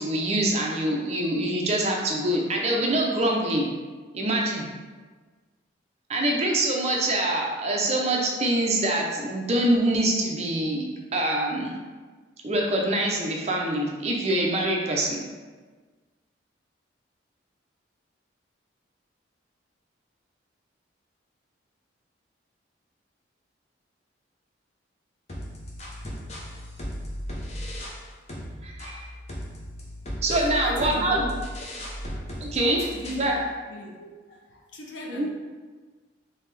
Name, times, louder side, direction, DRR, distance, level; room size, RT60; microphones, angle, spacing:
voice 1, 0.0-3.7 4.1-4.7 6.1-11.7 12.4-15.2 28.6-29.0 30.2-31.3 32.4-32.8 33.1-33.4 35.1-35.3, right 1 dB, 35° right, -1 dB, 0.5 m, -25 dB
sound 1, 25.3-28.0 28.3-33.3, equal, 35° left, 0.6 m, -36 dB
voice 2, 30.4-31.3 32.1-32.3 32.6-33.4 33.7-35.3, left 1 dB, 75° left, 0 dB, 0.7 m, -39 dB
3.5 x 3.3 x 3.3 m, 1.4 s
head